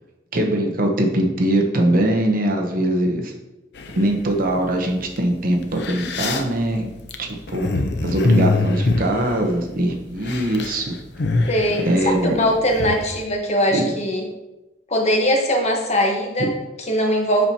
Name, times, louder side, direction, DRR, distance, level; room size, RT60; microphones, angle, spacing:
voice 1, 0.3-3.3 4.0-6.9 7.2-7.7 8.0-11.0 11.9-12.4 13.7-13.9 16.4-16.5, right 1 dB, 50° right, 3 dB, 0.9 m, -21 dB
sound 1, 3.8-4.4 5.2-5.3 5.6-9.9 10.1-10.8 11.0-13.1, left 2 dB, 65° left, 0.6 m, -24 dB
voice 2, 11.5-14.3 14.9-17.5, equal, 40° left, 1 dB, 1.1 m, -21 dB
7.5 x 5.7 x 2.8 m, 0.98 s
head